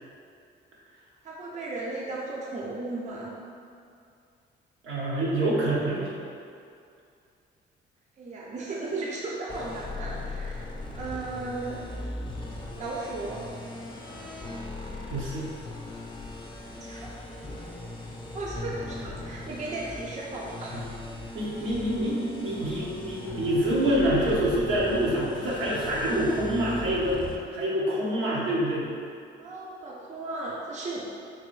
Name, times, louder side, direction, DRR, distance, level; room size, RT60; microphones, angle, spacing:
voice 1, 1.2-3.4 8.2-10.6 10.9-11.8 12.8-13.5 16.8-17.1 18.3-20.8 29.4-31.0, right 2 dB, 35° right, -4 dB, 0.5 m, -35 dB
voice 2, 4.8-6.1 15.1-15.5 21.3-27.2 27.5-28.9, right 1 dB, 80° right, -6 dB, 1.0 m, -26 dB
sound 1, 9.5-27.4, left 2 dB, 25° left, 0.6 m, -39 dB
3.8 x 2.6 x 3.1 m, 2.4 s
cardioid pair, 90°, 20 cm